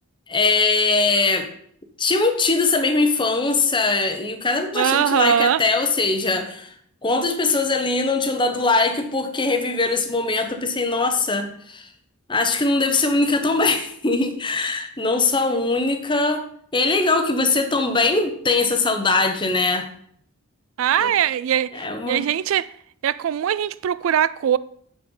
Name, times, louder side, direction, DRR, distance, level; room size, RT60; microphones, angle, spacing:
voice 1, 0.3-1.5 2.0-6.7 7.0-11.9 12.3-16.4 16.7-19.9 21.0-21.1 21.7-22.2, left 3 dB, 20° left, 1.0 m, -21 dB
voice 2, 4.7-5.6 20.8-22.7 23.0-24.6, right 9 dB, 65° right, 0.3 m, -21 dB
7.8 x 7.1 x 5.4 m
head